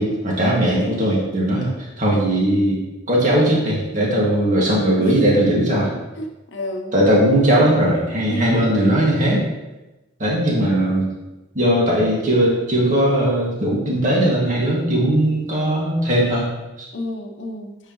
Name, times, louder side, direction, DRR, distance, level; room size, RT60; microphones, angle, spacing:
voice 1, 0.0-2.8 3.1-5.9 6.9-9.4 10.2-11.1 11.5-16.5 16.8-16.9, right 1 dB, 40° right, -4 dB, 2.0 m, -18 dB
voice 2, 5.9-7.0 8.3-8.8 16.9-17.8, left 1 dB, 70° left, 3 dB, 0.8 m, -31 dB
9.7 x 4.8 x 3.0 m, 1.0 s
head